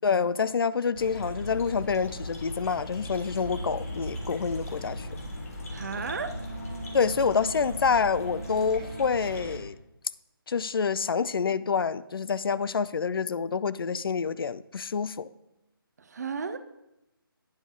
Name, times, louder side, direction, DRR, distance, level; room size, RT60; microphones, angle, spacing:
voice 1, 0.0-5.2 6.9-9.8 10.5-15.3, left 5 dB, 70° left, 0.4 m, -27 dB
sound 1, 0.9-9.6, left 1 dB, 40° left, 1.4 m, -38 dB
voice 2, 5.7-6.4 16.0-16.6, right 5 dB, 45° right, 0.5 m, -34 dB
Wind instrument woodwind instrument, 6.2-9.7, right 3 dB, 25° right, 1.6 m, -43 dB
9.6 x 5.9 x 3.6 m
figure-of-eight pair, 160°, 12 cm